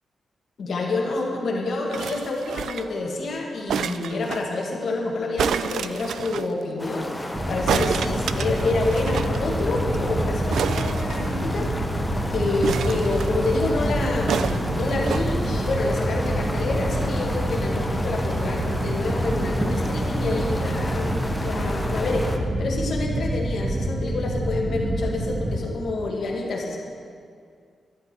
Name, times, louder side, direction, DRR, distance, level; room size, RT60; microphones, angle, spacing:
voice 1, 0.6-11.7 12.3-22.3 22.6-26.8, left 2 dB, 55° left, -1 dB, 1.9 m, -28 dB
sound 1, 1.9-3.0 3.7-4.4 5.4-6.5 7.7-9.4 9.6-9.7 9.9-10.1 10.5-11.7 12.6-13.6 14.3-15.2 16.0-16.1, right 7 dB, 90° right, 0.4 m, -29 dB
sound 2, 6.8-22.4, left 1 dB, 10° left, 0.8 m, -33 dB
sound 3, 7.3-25.6, right 1 dB, 25° right, 1.2 m, -27 dB
12.0 x 11.5 x 4.5 m, 2.2 s
wide cardioid pair, 170°, 0 cm